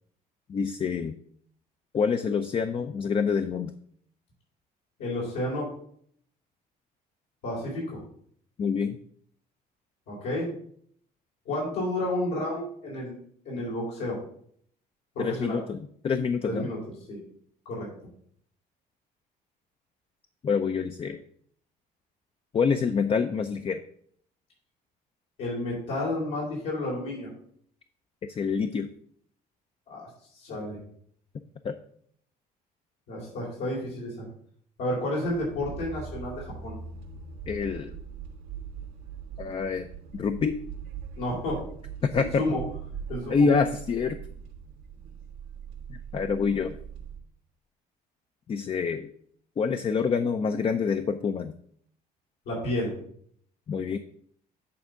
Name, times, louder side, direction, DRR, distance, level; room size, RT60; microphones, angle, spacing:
voice 1, 0.5-1.1 1.9-3.7 8.6-9.0 15.2-16.7 20.4-21.2 22.5-23.8 28.3-28.9 31.6-31.8 37.5-38.0 39.4-39.9 40.1-40.6 42.0-42.4 43.3-44.2 45.9-46.8 48.5-49.1 49.6-51.5 53.7-54.0, left 5 dB, 35° left, 8 dB, 0.5 m, -26 dB
voice 2, 5.0-5.7 7.4-8.0 10.1-10.5 11.5-13.1 13.5-14.2 15.2-15.6 16.4-16.8 17.1-17.2 17.7-17.9 25.4-27.3 29.9-30.1 30.3-30.8 33.1-34.3 34.8-36.8 41.2-41.6 42.2-42.6 43.1-43.5 52.5-53.0, left 1 dB, 85° left, -5 dB, 3.7 m, -31 dB
sound 1, 35.2-47.2, right 7 dB, 85° right, 1.4 m, -41 dB
8.6 x 3.5 x 6.3 m, 0.63 s
cardioid pair, 110°, 17 cm